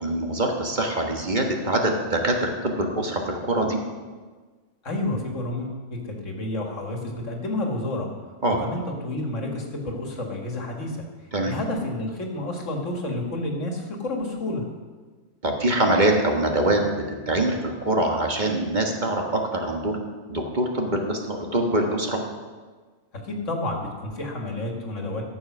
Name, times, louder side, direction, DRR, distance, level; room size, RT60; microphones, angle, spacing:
voice 1, 0.0-3.8 8.4-8.6 11.3-11.6 15.4-20.0 20.3-22.2, right 1 dB, 35° right, 2 dB, 1.5 m, -24 dB
voice 2, 4.8-11.0 11.4-14.6 23.2-25.3, left 1 dB, 65° left, 1 dB, 2.1 m, -30 dB
13.0 x 7.3 x 6.1 m, 1.4 s
omnidirectional pair, 1.4 m